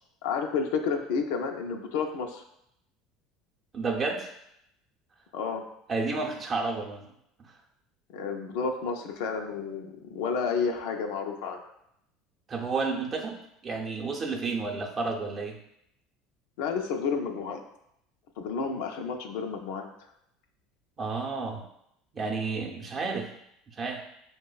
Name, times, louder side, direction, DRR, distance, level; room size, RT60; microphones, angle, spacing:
voice 1, 0.2-2.4 5.3-5.7 8.1-11.6 16.6-17.6 18.4-19.9, left 5 dB, 75° left, 3 dB, 0.4 m, -31 dB
voice 2, 3.7-4.3 5.9-7.0 7.4-7.5 12.5-15.6 21.0-21.6 22.1-23.3 23.8-24.0, right 4 dB, 35° right, 1 dB, 0.6 m, -31 dB
4.8 x 2.0 x 2.3 m, 0.78 s
hypercardioid pair, 80°, 0 cm